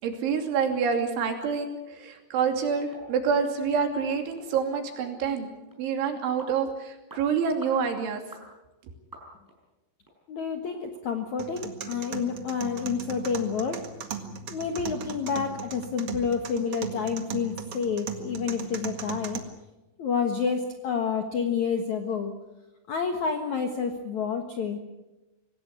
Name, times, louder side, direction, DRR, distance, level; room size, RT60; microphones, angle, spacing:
voice 1, 0.0-5.5 5.8-8.2 8.8-8.9, right 6 dB, 75° right, 4 dB, 5.1 m, -27 dB
sound 1, 2.9-3.1 3.4-3.6 4.0-4.1 4.4-4.5 5.0-5.2 5.7-5.8 6.4-6.6 7.1-7.2 7.6-7.8 8.3-8.5 9.1-9.6 10.0-10.1 10.6-10.7 11.2-11.3, equal, 5° right, 5.7 m, -46 dB
voice 2, 10.3-13.8 14.5-19.4 20.0-22.3 22.9-24.8, left 6 dB, 65° left, 5 dB, 1.9 m, -29 dB
sound 2, 11.4-19.4, right 6 dB, 55° right, 1.6 m, -38 dB
25.5 x 18.5 x 8.4 m, 1.1 s
omnidirectional pair, 5.6 m